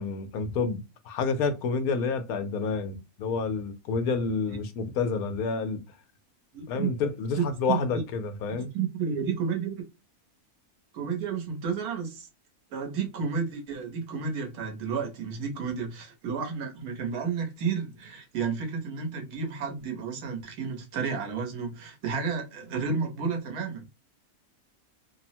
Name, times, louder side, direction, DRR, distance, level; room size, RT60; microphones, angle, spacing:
voice 1, 0.0-5.8 6.7-8.7, left 4 dB, 75° left, 1.1 m, -29 dB
voice 2, 6.5-6.9 7.4-7.8 8.7-9.9 10.9-12.3 12.7-23.9, right 6 dB, 85° right, 1.4 m, -31 dB
3.2 x 2.0 x 2.7 m
omnidirectional pair, 1.6 m